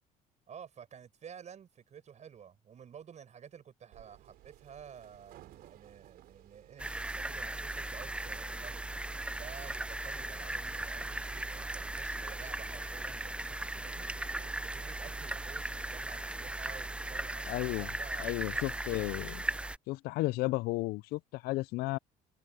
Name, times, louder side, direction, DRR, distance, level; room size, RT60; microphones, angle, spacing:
voice 1, 0.5-8.9 9.3-14.1 14.6-19.2, right 8 dB, 45° right, 6.4 m, -52 dB
sound 1, 3.9-17.2, right 15 dB, 75° right, 4.1 m, -58 dB
sound 2, 6.8-19.8, right 1 dB, 5° right, 0.5 m, -38 dB
voice 2, 17.5-17.9 18.2-19.4 19.9-22.0, left 20 dB, 75° left, 0.5 m, -33 dB
supercardioid pair, 85°, 16 cm